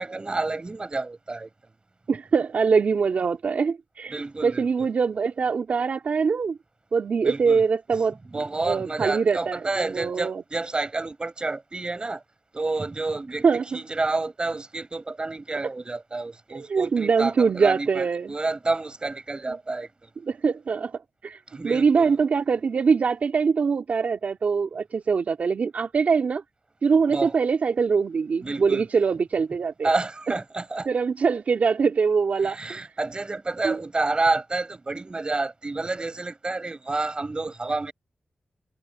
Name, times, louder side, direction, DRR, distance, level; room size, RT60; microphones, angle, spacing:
voice 1, 0.0-1.5 4.1-4.9 7.2-7.7 8.2-12.2 12.5-20.1 21.5-22.2 27.1-27.3 28.4-28.9 29.8-30.9 32.4-37.9, right 3 dB, 35° right, 4.7 m, -29 dB
voice 2, 2.1-4.1 4.4-6.6 6.9-8.2 8.6-9.6 9.9-10.4 13.4-13.8 16.5-18.3 20.3-20.9 21.2-26.4 26.8-29.9 30.9-32.9 33.6-33.7, right 5 dB, 70° right, 2.8 m, -23 dB
cardioid pair, 65°, 3 cm